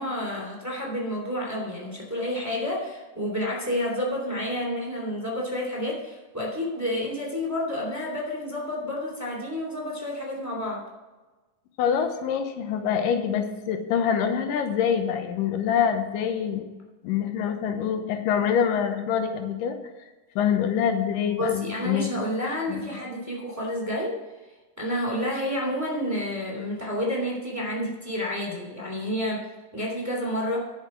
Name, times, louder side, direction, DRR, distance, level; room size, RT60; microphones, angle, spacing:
voice 1, 0.0-10.8 21.2-24.2 24.8-29.5 29.7-30.6, left 1 dB, 5° right, -3 dB, 2.3 m, -30 dB
voice 2, 11.8-16.7 17.0-19.8 20.4-22.1 22.7-23.0, left 8 dB, 90° left, 7 dB, 2.6 m, -25 dB
10.5 x 6.6 x 6.0 m, 1.2 s
omnidirectional pair, 3.8 m